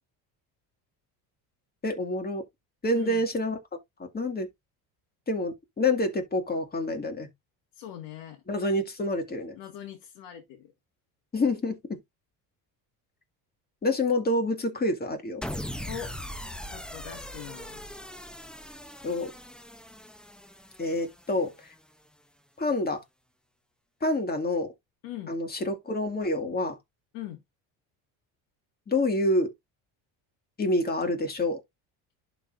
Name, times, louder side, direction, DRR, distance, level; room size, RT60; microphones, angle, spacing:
voice 1, 1.8-2.4 2.8-3.6 4.0-4.5 5.3-7.3 8.5-9.6 11.3-12.0 13.8-15.4 19.0-19.3 20.8-21.7 22.6-23.0 24.0-24.7 25.3-26.8 28.9-29.5 30.6-31.6, left 2 dB, 20° left, 2.0 m, -27 dB
voice 2, 7.7-8.4 9.5-10.7 15.9-16.2 16.7-17.9 25.0-25.3 27.1-27.4, left 11 dB, 85° left, 1.8 m, -41 dB
sound 1, 15.4-21.8, equal, ahead, 0.5 m, -40 dB
11.5 x 4.0 x 2.5 m
cardioid pair, 110°, 42 cm